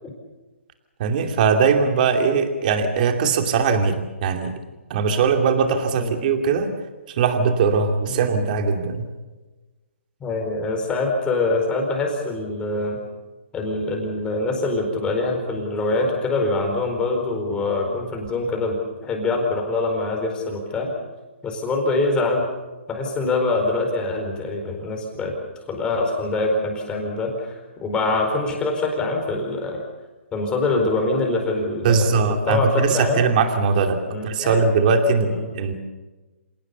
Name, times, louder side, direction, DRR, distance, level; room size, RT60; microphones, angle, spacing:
voice 1, 1.0-4.5 4.9-6.7 7.2-9.1 31.8-35.7, right 5 dB, 40° right, 5 dB, 2.7 m, -20 dB
voice 2, 10.2-13.0 13.5-18.8 19.0-20.9 21.4-22.5 22.9-25.3 25.7-29.8 30.3-33.2 34.1-34.6 35.2-35.5, left 2 dB, 15° left, 2 dB, 4.5 m, -24 dB
27.0 x 18.0 x 7.0 m, 1.2 s
hypercardioid pair, 150°, 7 cm